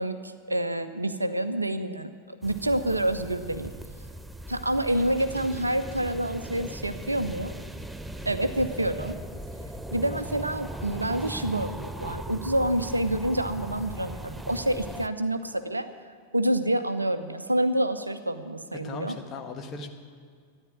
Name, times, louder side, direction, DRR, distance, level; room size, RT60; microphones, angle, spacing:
voice 1, 0.0-3.7 4.5-7.6 8.3-9.2 9.9-15.9 16.3-19.2, right 1 dB, 85° right, 10 dB, 0.7 m, -28 dB
sound 1, 2.4-15.1, right 1 dB, 5° right, 0.5 m, -39 dB
voice 2, 18.7-19.9, left 3 dB, 30° left, 4 dB, 1.5 m, -38 dB
13.0 x 9.7 x 8.9 m, 2.1 s
figure-of-eight pair, 90°, 0 cm